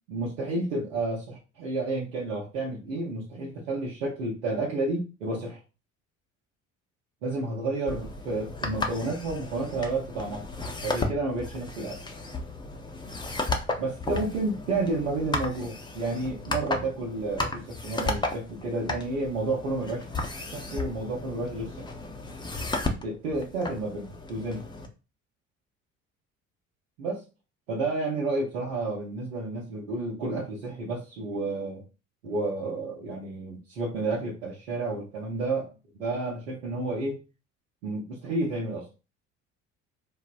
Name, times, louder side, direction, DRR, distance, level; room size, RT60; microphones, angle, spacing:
voice 1, 0.1-5.6 7.2-10.4 10.8-12.0 13.8-20.0 20.5-21.9 23.0-24.6 27.0-27.2 27.7-31.8 32.2-35.7 35.9-37.2 37.8-38.8, right 2 dB, 85° right, -5 dB, 0.7 m, -31 dB
sound 1, 7.9-24.9, left 2 dB, 10° left, 0.5 m, -34 dB
3.5 x 2.0 x 2.4 m, 0.31 s
hypercardioid pair, 55°, 38 cm